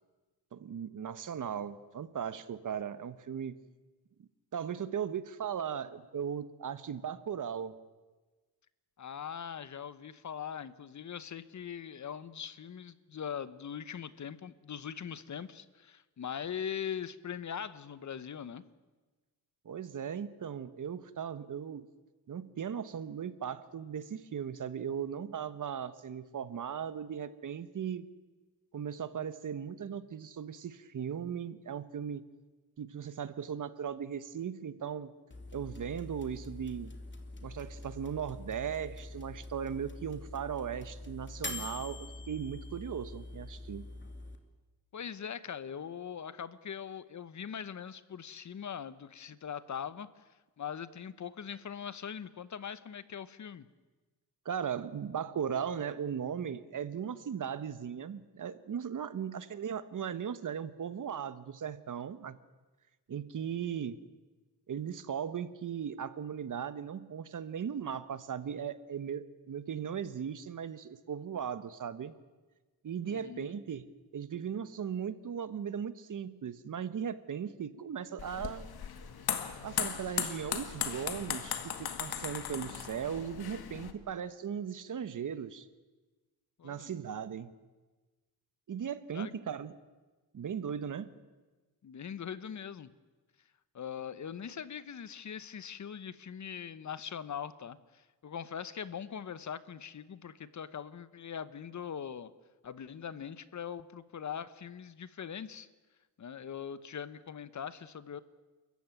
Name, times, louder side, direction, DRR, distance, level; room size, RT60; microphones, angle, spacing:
voice 1, 0.5-3.5 4.5-7.8 19.6-21.9 22.3-28.0 28.7-32.2 32.8-35.1 35.5-36.9 37.4-43.9 54.4-62.4 63.1-64.0 64.7-72.1 72.8-73.9 74.1-78.7 79.6-85.7 86.6-87.5 88.7-89.7 90.3-91.1, right 8 dB, 50° right, 14 dB, 1.2 m, -38 dB
voice 2, 9.0-18.6 44.9-50.2 50.6-53.7 73.0-73.5 86.6-86.9 89.1-89.3 91.8-92.9 93.7-102.3 102.6-105.7 106.2-108.2, left 8 dB, 45° left, 15 dB, 1.0 m, -41 dB
sound 1, 35.3-44.4, left 2 dB, 30° left, 2.6 m, -45 dB
sound 2, 78.2-83.9, left 8 dB, 70° left, 2.0 m, -37 dB
29.5 x 14.5 x 9.1 m, 1.3 s
cardioid pair, 115°, 39 cm